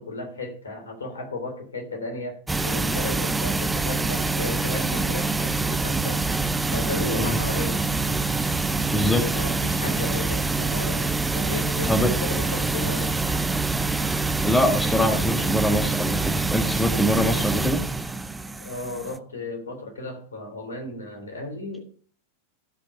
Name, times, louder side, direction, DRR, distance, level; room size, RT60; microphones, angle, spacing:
voice 1, 0.0-6.2 6.7-7.8 9.3-13.2 18.6-21.9, left 2 dB, 70° left, 3.4 m, -34 dB
Hand Dryer, 2.5-19.2, right 3 dB, 5° right, 0.6 m, -25 dB
voice 2, 8.9-9.2 11.8-12.1 13.9-14.0 14.4-17.8, left 1 dB, 10° left, 1.5 m, -24 dB
15.5 x 5.2 x 5.9 m
figure-of-eight pair, 90°, 0 cm